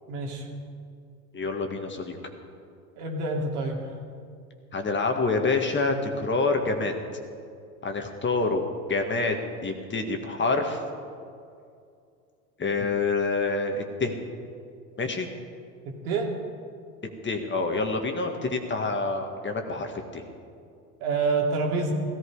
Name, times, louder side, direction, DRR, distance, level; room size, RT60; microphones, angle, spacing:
voice 1, 0.1-0.5 3.0-4.0 16.0-16.3 21.0-21.9, right 3 dB, 70° right, 0 dB, 2.9 m, -27 dB
voice 2, 1.3-2.2 4.7-6.9 7.8-8.6 8.9-9.4 9.6-10.8 12.6-14.2 15.0-15.3 17.2-20.2, left 3 dB, 25° left, 4 dB, 1.8 m, -27 dB
16.0 x 15.0 x 4.9 m, 2.4 s
hypercardioid pair, 90°, 47 cm